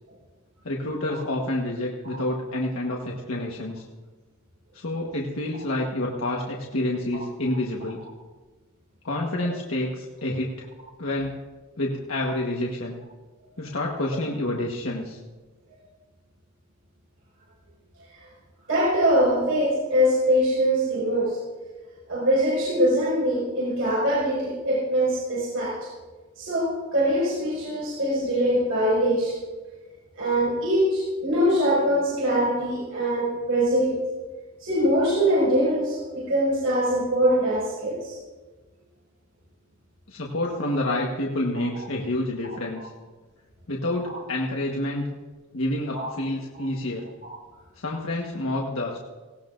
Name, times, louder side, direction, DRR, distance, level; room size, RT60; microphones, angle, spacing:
voice 1, 0.6-3.8 4.7-8.0 9.0-10.6 11.0-11.4 11.8-13.0 13.6-15.2 40.1-42.9 43.7-45.1 45.5-47.1 47.8-49.0, left 1 dB, 75° left, -2 dB, 1.4 m, -28 dB
voice 2, 18.7-21.4 22.1-25.7 26.4-29.3 30.2-34.0 34.6-38.2 42.4-42.5 45.9-46.0 47.2-47.3, equal, 75° right, -7 dB, 5.9 m, -23 dB
19.0 x 17.5 x 2.6 m, 1.3 s
head